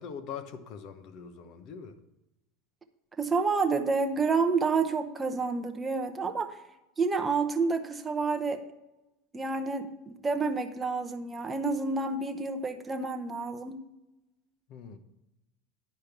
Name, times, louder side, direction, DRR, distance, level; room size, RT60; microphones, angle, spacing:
voice 1, 0.0-2.0 14.7-15.0, left 6 dB, 50° left, 10 dB, 0.9 m, -42 dB
voice 2, 3.2-6.6 7.0-8.6 9.3-13.8, right 4 dB, 15° right, 6 dB, 0.8 m, -29 dB
10.5 x 5.2 x 5.9 m, 0.97 s
supercardioid pair, 150°, 0 cm